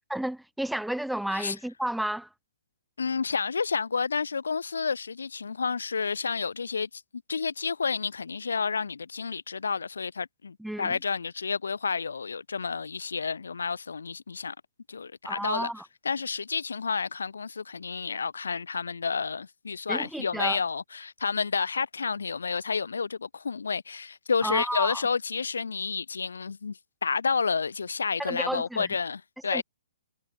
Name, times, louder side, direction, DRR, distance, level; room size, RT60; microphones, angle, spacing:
voice 1, 0.1-2.3 10.6-11.0 15.2-15.8 19.9-20.6 24.4-25.0 28.2-28.9 29.5-29.6, right 1 dB, ahead, 0.5 m, -31 dB
voice 2, 3.0-7.0 7.3-14.5 14.9-15.7 16.0-29.6, left 5 dB, 75° left, 1.0 m, -30 dB
hypercardioid pair, 130°, 0 cm